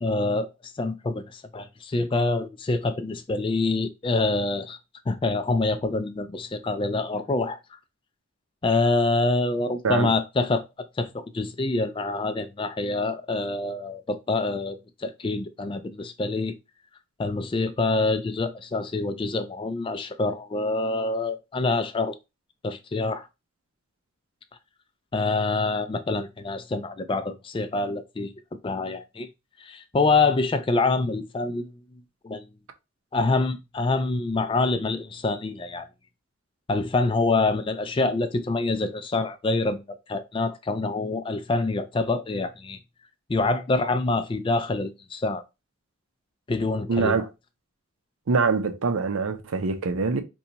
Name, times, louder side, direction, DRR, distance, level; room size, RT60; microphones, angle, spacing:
voice 1, 0.0-4.8 5.1-7.6 8.6-10.6 11.0-16.6 17.2-22.1 22.6-23.3 25.1-28.3 28.6-29.3 29.6-32.5 33.1-35.9 36.7-42.8 43.3-45.4 46.5-47.2, left 3 dB, 25° left, 0.3 m, -26 dB
voice 2, 46.9-47.3 48.3-50.2, right 4 dB, 85° right, 0.5 m, -24 dB
2.8 x 2.3 x 3.9 m
head